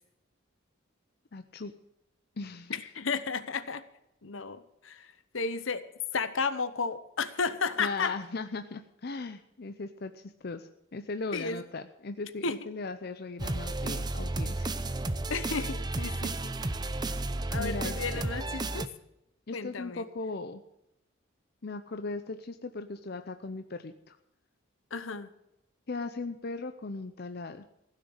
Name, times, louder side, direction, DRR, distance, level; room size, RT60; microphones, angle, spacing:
voice 1, 1.3-1.7 2.4-2.7 7.8-14.7 17.6-18.3 19.5-20.6 21.6-24.2 25.9-27.6, left 3 dB, 50° left, 8 dB, 0.6 m, -38 dB
voice 2, 2.7-3.8 4.2-5.8 6.1-8.2 11.3-11.6 12.4-12.6 15.3-16.5 17.5-18.9 19.5-20.1 24.9-25.3, left 4 dB, 70° left, 13 dB, 1.0 m, -33 dB
Freelance Loop, 13.4-18.9, right 2 dB, 20° right, 0.6 m, -32 dB
16.0 x 6.7 x 8.8 m, 0.85 s
head